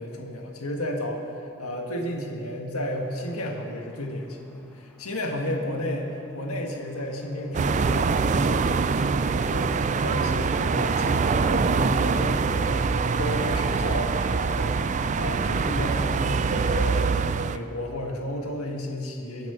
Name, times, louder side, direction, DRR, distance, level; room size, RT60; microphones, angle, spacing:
voice 1, 0.0-12.9 13.2-17.1 17.4-19.5, left 1 dB, 85° left, 1 dB, 1.7 m, -32 dB
sound 1, 2.9-13.0, equal, 5° left, 1.1 m, -49 dB
sound 2, 7.5-17.6, right 4 dB, 35° right, 0.3 m, -24 dB
22.5 x 7.6 x 5.6 m, 2.5 s
head